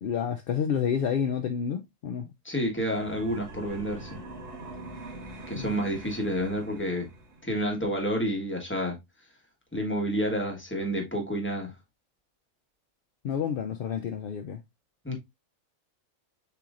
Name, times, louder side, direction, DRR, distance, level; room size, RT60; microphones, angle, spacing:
voice 1, 0.0-2.3 5.5-5.7 13.2-14.6, left 7 dB, 65° left, 0.5 m, -29 dB
voice 2, 2.4-4.2 5.5-7.1 7.4-9.0 9.7-11.7 15.0-15.1, equal, 10° left, 1.3 m, -29 dB
sound 1, 2.9-7.6, right 2 dB, 55° right, 1.4 m, -43 dB
6.8 x 3.0 x 2.4 m
omnidirectional pair, 1.4 m